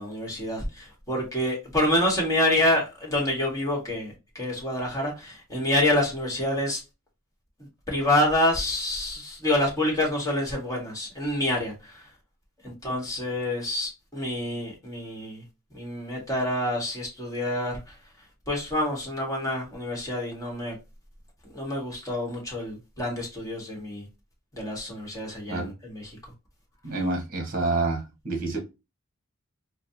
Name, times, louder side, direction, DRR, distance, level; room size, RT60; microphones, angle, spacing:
voice 1, 0.0-6.8 7.9-11.7 12.6-15.4 15.7-17.8 18.5-20.7 21.5-24.0 24.5-26.0, left 1 dB, 15° left, 1.4 m, -27 dB
voice 2, 26.8-28.6, right 2 dB, 45° right, 1.3 m, -28 dB
4.1 x 2.3 x 2.7 m
head